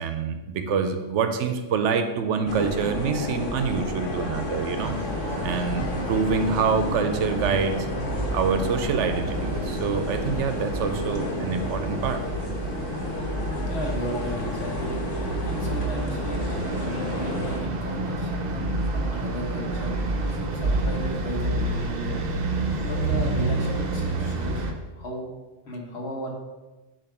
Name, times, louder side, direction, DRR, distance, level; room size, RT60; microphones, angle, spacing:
voice 1, 0.0-4.9 5.4-7.9 8.3-12.2, right 6 dB, 75° right, 7 dB, 0.9 m, -26 dB
sound 1, 2.5-17.6, left 1 dB, 85° left, 1.3 m, -31 dB
sound 2, 4.7-24.7, right 2 dB, 45° right, 0.6 m, -30 dB
voice 2, 13.7-15.0 15.4-16.5 16.8-22.1 22.8-24.7 24.9-25.3 25.6-26.3, equal, 60° left, 0 dB, 1.3 m, -35 dB
6.9 x 2.9 x 5.8 m, 1.2 s
omnidirectional pair, 1.3 m